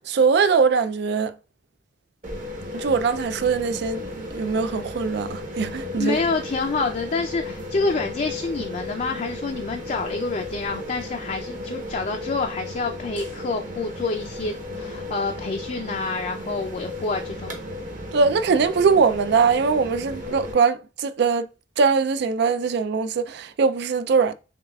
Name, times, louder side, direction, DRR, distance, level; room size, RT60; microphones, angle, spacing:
voice 1, 0.1-1.3 2.7-6.2 18.1-21.5 21.8-24.3, right 5 dB, 65° right, 0.3 m, -21 dB
sound 1, 2.2-20.5, left 2 dB, 45° right, 1.1 m, -35 dB
voice 2, 6.0-17.6, left 3 dB, 40° left, 0.4 m, -27 dB
6.6 x 2.3 x 2.3 m
head